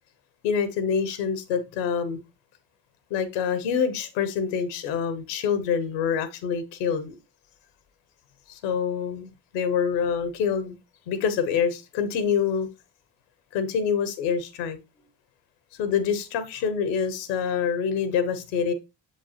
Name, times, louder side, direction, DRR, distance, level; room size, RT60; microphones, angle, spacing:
voice 1, 0.4-2.2 3.1-7.1 8.5-10.8 11.1-12.7 13.5-14.8 15.8-18.7, left 7 dB, 85° left, 0.9 m, -26 dB
6.9 x 5.2 x 2.8 m
hypercardioid pair, 40°, 50 cm